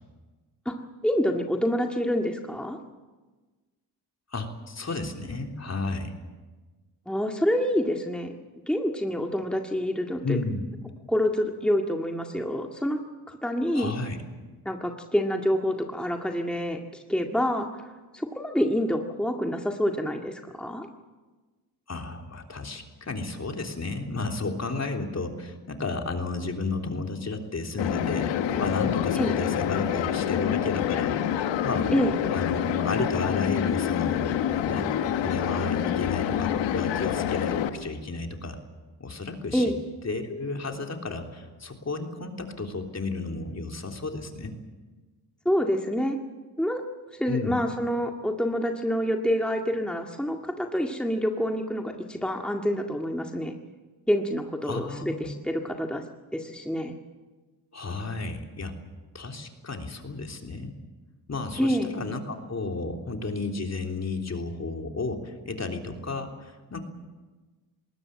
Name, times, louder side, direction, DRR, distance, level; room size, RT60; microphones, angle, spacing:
voice 1, 1.0-2.8 7.1-8.3 8.7-10.4 11.1-13.0 13.3-14.0 14.7-17.7 18.1-20.9 29.2-29.4 31.9-32.2 39.5-39.8 45.5-46.2 46.6-46.8 47.2-53.5 54.1-56.0 56.3-56.9 61.6-62.0, equal, ahead, 2 dB, 2.0 m, -27 dB
voice 2, 4.3-6.1 10.2-10.7 13.7-14.2 21.9-31.2 31.6-31.9 32.3-34.3 34.7-34.9 35.2-38.6 39.0-39.7 40.0-44.5 47.3-47.6 54.6-55.3 57.7-58.7 59.1-60.7 61.3-66.8, left 3 dB, 35° left, 3 dB, 3.5 m, -32 dB
sound 1, 27.8-37.7, left 10 dB, 90° left, 1.4 m, -27 dB
20.5 x 18.5 x 8.8 m, 1.3 s
cardioid pair, 65°, 43 cm